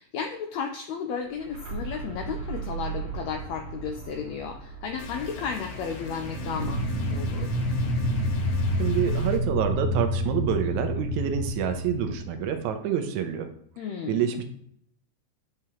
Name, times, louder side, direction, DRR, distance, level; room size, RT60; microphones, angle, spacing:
voice 1, 0.0-6.8 7.1-7.5 13.8-14.3, left 6 dB, 90° left, 3 dB, 1.5 m, -33 dB
sound 1, 1.2-7.0, right 5 dB, 35° right, 2.1 m, -38 dB
sound 2, 5.0-9.4, left 5 dB, 70° left, 2.3 m, -40 dB
sound 3, 6.2-12.7, equal, 55° right, 2.1 m, -28 dB
voice 2, 8.8-13.5 14.1-14.4, right 8 dB, 75° right, 7 dB, 1.9 m, -27 dB
7.8 x 4.9 x 2.9 m, 0.67 s
omnidirectional pair, 3.7 m